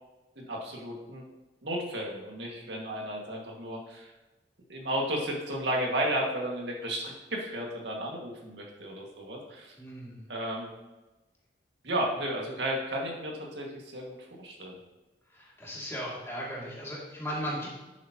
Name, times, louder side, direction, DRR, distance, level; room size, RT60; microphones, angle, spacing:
voice 1, 0.4-1.2 1.6-4.1 4.7-9.7 10.3-10.7 11.8-14.8, right 1 dB, 80° right, -1 dB, 2.0 m, -33 dB
voice 2, 9.8-10.2 15.3-17.7, equal, 15° left, -6 dB, 2.5 m, -36 dB
10.5 x 8.3 x 3.0 m, 1.1 s
head